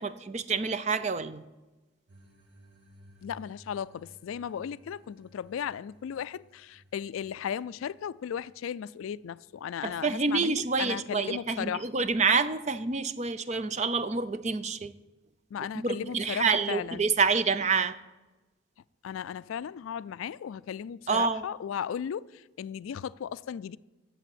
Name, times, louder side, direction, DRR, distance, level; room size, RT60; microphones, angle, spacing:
voice 1, 0.0-1.4 9.8-14.9 15.7-18.0 21.1-21.4, right 4 dB, 35° right, 0.5 m, -27 dB
sound 1, 2.1-10.1, right 1 dB, 55° right, 2.0 m, -58 dB
voice 2, 3.2-11.9 15.5-17.0 19.0-23.8, left 8 dB, 85° left, 0.3 m, -36 dB
11.0 x 7.7 x 7.8 m
head